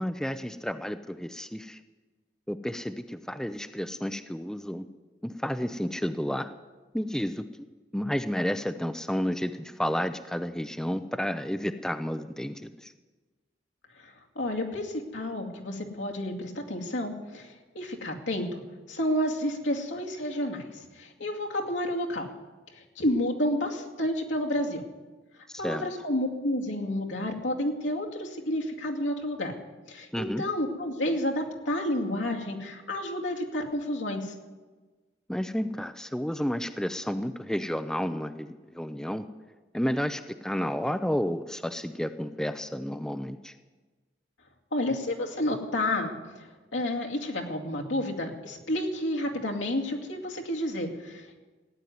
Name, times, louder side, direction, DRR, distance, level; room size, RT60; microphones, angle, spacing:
voice 1, 0.0-1.8 2.5-4.9 5.2-6.5 6.9-7.5 7.9-12.9 25.5-25.9 30.1-30.4 35.3-39.2 39.7-43.5, equal, 5° left, 10 dB, 0.5 m, -31 dB
voice 2, 14.4-18.6 18.9-20.7 21.0-22.3 23.0-24.8 25.6-29.5 29.9-34.3 44.7-46.1 46.7-51.4, left 1 dB, 85° left, 1 dB, 2.4 m, -30 dB
16.0 x 9.7 x 9.4 m, 1.3 s
head